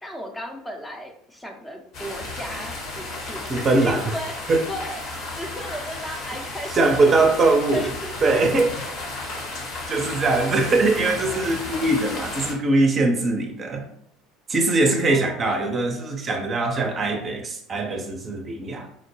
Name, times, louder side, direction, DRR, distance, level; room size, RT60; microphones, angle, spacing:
voice 1, 0.0-4.3 4.7-7.4 7.7-8.9 11.1-11.8 14.9-15.7, equal, 10° left, 2 dB, 0.6 m, -36 dB
sound 1, 1.9-12.5, left 2 dB, 55° left, 1.0 m, -33 dB
voice 2, 3.5-4.1 4.5-4.6 6.7-7.9 8.2-8.7 9.9-13.9 14.5-18.9, right 2 dB, 35° right, 3 dB, 0.6 m, -21 dB
3.7 x 2.1 x 3.1 m, 0.68 s
figure-of-eight pair, 65°, 0 cm